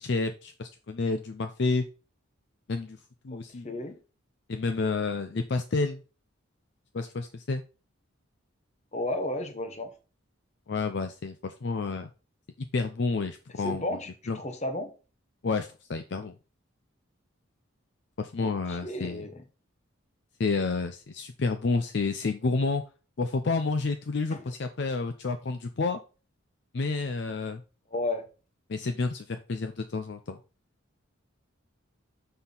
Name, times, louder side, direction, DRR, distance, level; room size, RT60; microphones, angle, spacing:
voice 1, 0.0-1.8 2.7-3.0 3.2-3.7 4.5-6.0 6.9-7.6 10.7-12.1 12.6-14.0 14.3-14.4 15.4-16.4 18.2-19.2 20.4-22.8 23.2-26.0 26.7-27.6 28.7-30.4, left 3 dB, 55° left, 0.5 m, -30 dB
voice 2, 3.3-3.9 8.9-9.9 13.6-14.9 18.4-19.4 24.3-24.4 27.9-28.2, left 1 dB, 30° left, 0.9 m, -33 dB
6.2 x 5.6 x 3.9 m
head